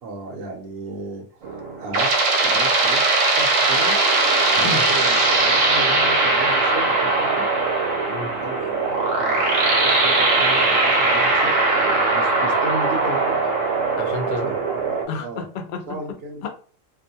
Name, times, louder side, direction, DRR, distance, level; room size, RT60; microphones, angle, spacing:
voice 1, 0.0-1.3 1.8-2.1 2.4-4.0 4.6-7.5 8.4-9.4 9.8-13.5 14.2-14.8 15.2-15.4 15.9-16.4, right 2 dB, 60° right, 2 dB, 0.8 m, -34 dB
sound 1, 1.4-15.1, right 3 dB, 75° right, 1.1 m, -20 dB
voice 2, 4.5-4.9 8.1-8.3 14.0-14.5 15.1-16.5, left 4 dB, 75° left, 5 dB, 0.4 m, -31 dB
2.4 x 2.1 x 2.7 m, 0.43 s
omnidirectional pair, 1.4 m